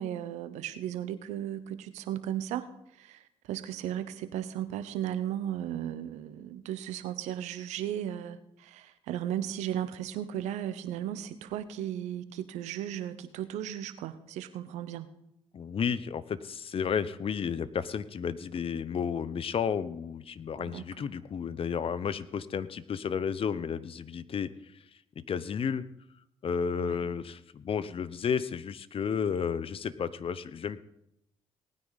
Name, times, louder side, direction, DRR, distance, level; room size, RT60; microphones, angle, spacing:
voice 1, 0.0-15.1 20.6-21.1 26.7-27.1, right 11 dB, 85° right, 12 dB, 0.9 m, -36 dB
voice 2, 15.5-24.5 25.2-25.8 26.4-30.8, left 7 dB, 55° left, 16 dB, 0.8 m, -32 dB
18.5 x 9.5 x 4.1 m, 0.78 s
supercardioid pair, 60°, 12 cm